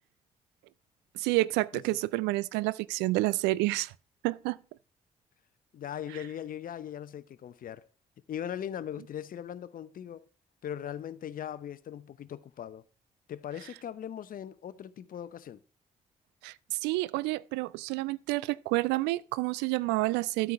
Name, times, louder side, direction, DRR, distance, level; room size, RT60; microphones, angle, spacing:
voice 1, 1.1-3.9 4.2-4.6 16.4-20.5, right 20 dB, 70° right, 0.4 m, -29 dB
voice 2, 5.7-7.9 8.3-10.2 10.6-12.8 13.3-15.6, left 10 dB, 50° left, 0.7 m, -39 dB
13.0 x 4.7 x 5.7 m
figure-of-eight pair, 40°, 18 cm